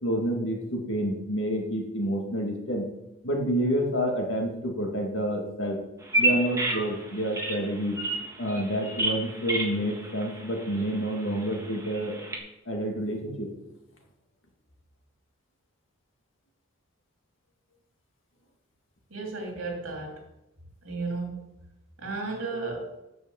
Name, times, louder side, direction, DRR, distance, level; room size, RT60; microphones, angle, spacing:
voice 1, 0.0-2.8 3.2-5.8 6.2-8.0 8.4-12.2 12.7-13.5, equal, 70° left, 1 dB, 2.1 m, -28 dB
Bird vocalization bird call bird song, 6.0-12.4, right 2 dB, 15° right, 1.5 m, -31 dB
voice 2, 19.1-20.2 20.8-21.4 22.0-22.9, right 3 dB, 75° right, 1 dB, 2.9 m, -33 dB
8.6 x 6.4 x 7.1 m, 0.92 s
head